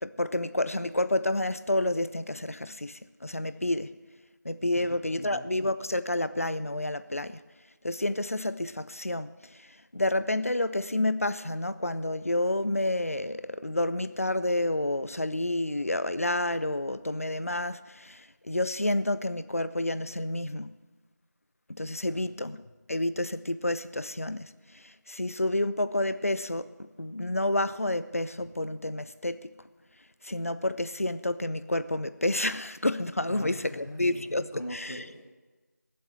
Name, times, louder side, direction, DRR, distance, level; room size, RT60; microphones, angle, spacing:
voice 1, 0.0-3.9 4.4-7.4 7.8-9.3 9.6-9.7 9.9-20.7 21.7-29.5 30.2-35.1, left 1 dB, 50° left, 14 dB, 0.6 m, -29 dB
voice 2, 4.7-5.5 22.1-22.3 33.3-34.2 34.5-35.2, left 1 dB, 70° left, -2 dB, 1.9 m, -42 dB
17.5 x 7.8 x 7.5 m, 1.3 s
figure-of-eight pair, 175°, 10 cm